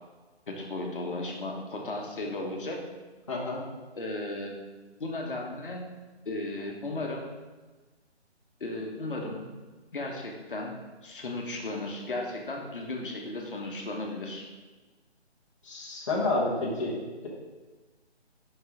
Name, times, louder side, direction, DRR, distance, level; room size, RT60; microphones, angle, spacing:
voice 1, 0.5-2.8 3.9-4.5 5.0-5.9 6.2-7.2 8.6-9.4 9.9-10.8 11.0-14.5, left 2 dB, 50° left, 0 dB, 1.4 m, -35 dB
voice 2, 3.3-3.6 15.6-17.0 17.2-17.3, left 2 dB, 30° left, -5 dB, 1.3 m, -29 dB
5.5 x 5.4 x 5.0 m, 1.3 s
hypercardioid pair, 175°, 33 cm